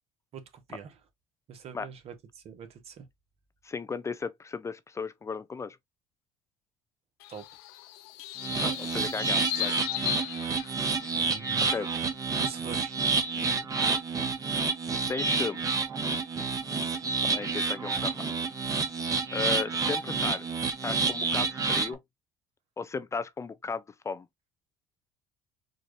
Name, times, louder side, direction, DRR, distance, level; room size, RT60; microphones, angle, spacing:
voice 1, 0.3-0.9 1.5-3.1 7.3-7.4 8.4-8.7 11.1-11.8 12.4-13.0 13.3-13.4, right 7 dB, 55° right, 1.2 m, -43 dB
voice 2, 3.6-5.8 8.6-9.7 11.7-11.9 13.3-13.7 15.1-15.6 17.2-18.3 19.3-20.5 20.8-22.0 22.8-24.3, left 5 dB, 25° left, 0.4 m, -35 dB
sound 1, 7.2-11.2, left 16 dB, 85° left, 0.4 m, -36 dB
sound 2, 8.4-21.9, right 4 dB, 30° right, 1.0 m, -29 dB
4.3 x 2.4 x 3.1 m
supercardioid pair, 85°, 12 cm